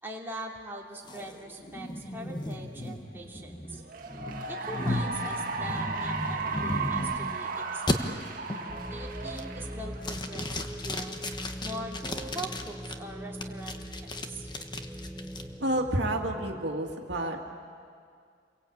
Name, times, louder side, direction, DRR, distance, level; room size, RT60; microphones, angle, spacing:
voice 1, 0.0-3.8 4.5-8.2 8.9-11.2 11.6-14.5, right 1 dB, 10° right, -3 dB, 2.9 m, -42 dB
sound 1, 1.0-7.4 7.9-8.0 8.5-8.8 9.2-9.7 10.0-12.9 13.4-15.4, left 1 dB, 25° left, 1.3 m, -35 dB
Cheering / Applause, 3.8-10.5, right 4 dB, 50° right, 1.9 m, -35 dB
sound 2, 8.7-16.6, equal, 5° left, 0.7 m, -41 dB
voice 2, 15.6-17.4, right 1 dB, 65° right, 1 dB, 2.3 m, -29 dB
29.0 x 23.0 x 8.7 m, 2.2 s
head